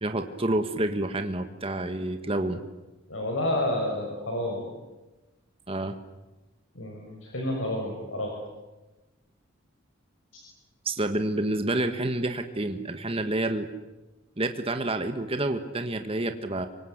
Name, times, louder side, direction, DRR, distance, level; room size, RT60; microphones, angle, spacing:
voice 1, 0.0-2.7 5.7-6.0 10.9-13.7 14.4-16.7, right 2 dB, 30° right, 7 dB, 1.7 m, -28 dB
voice 2, 3.1-4.6 6.7-8.3, left 1 dB, 80° left, 0 dB, 6.2 m, -29 dB
28.0 x 25.0 x 8.2 m, 1.1 s
head